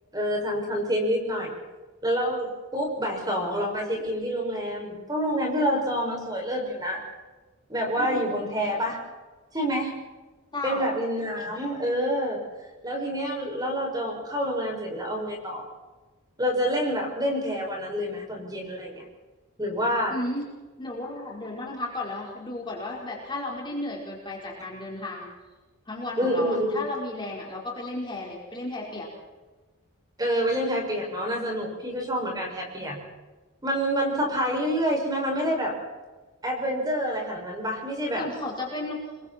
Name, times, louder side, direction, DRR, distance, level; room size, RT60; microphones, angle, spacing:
voice 1, 0.1-1.5 2.0-7.0 7.7-9.0 9.5-9.9 10.6-12.4 12.8-15.6 16.4-19.0 19.6-20.2 26.2-26.8 30.2-33.0 33.6-35.8 36.4-38.2, equal, 20° right, 0 dB, 6.5 m, -27 dB
voice 2, 10.5-10.9 20.1-20.4 20.8-25.3 25.9-29.1 32.8-32.9 38.1-39.0, left 2 dB, 20° left, -2 dB, 4.7 m, -34 dB
29.5 x 22.5 x 4.5 m, 1.3 s
head